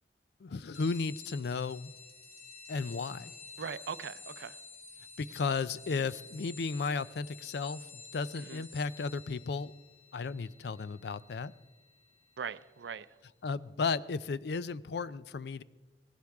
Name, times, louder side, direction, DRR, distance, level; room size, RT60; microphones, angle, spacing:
voice 1, 0.4-1.9 2.7-3.3 5.2-9.7 10.1-11.5 13.4-15.6, left 4 dB, 65° left, 17 dB, 0.4 m, -34 dB
sound 1, 0.7-12.8, left 4 dB, 40° left, 2.3 m, -51 dB
voice 2, 3.6-4.6 8.4-8.7 12.4-13.2, right 6 dB, 80° right, 16 dB, 0.5 m, -41 dB
18.5 x 16.0 x 3.6 m, 1.2 s
head